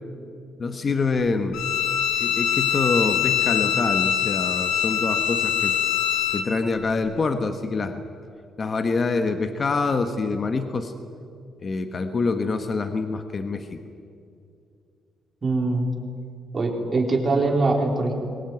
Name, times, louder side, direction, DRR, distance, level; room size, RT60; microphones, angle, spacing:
voice 1, 0.6-1.6 2.2-5.7 6.3-8.0 8.6-10.9 11.6-13.8, left 4 dB, 40° left, 8 dB, 1.4 m, -26 dB
Bowed string instrument, 1.5-6.5, left 9 dB, 80° left, 2.3 m, -23 dB
voice 2, 15.4-15.9 16.5-18.1, right 3 dB, 35° right, 2 dB, 4.1 m, -22 dB
22.0 x 18.5 x 9.4 m, 2.4 s
cardioid pair, 90°, 0 cm